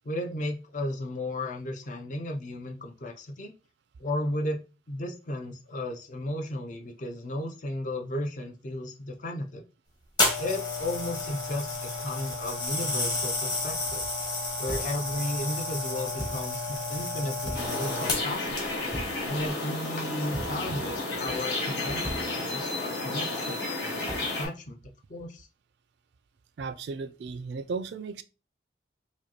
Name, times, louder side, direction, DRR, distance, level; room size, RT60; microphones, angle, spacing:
voice 1, 0.0-3.5 4.0-9.6 10.4-14.0 14.6-18.7 19.3-24.8 25.1-25.5, left 1 dB, 45° left, 0.5 m, -34 dB
sound 1, 10.2-18.5 19.2-19.5, left 2 dB, 25° left, 1.0 m, -31 dB
sound 2, 14.7-15.1 16.2-16.5 17.4-17.9 18.9-19.3 20.3-20.7 22.0-22.4 24.0-24.4, equal, 10° left, 0.7 m, -38 dB
sound 3, 17.5-24.5, left 2 dB, 65° left, 1.5 m, -32 dB
voice 2, 26.6-28.2, right 4 dB, 70° right, 0.3 m, -35 dB
5.0 x 2.2 x 2.8 m
head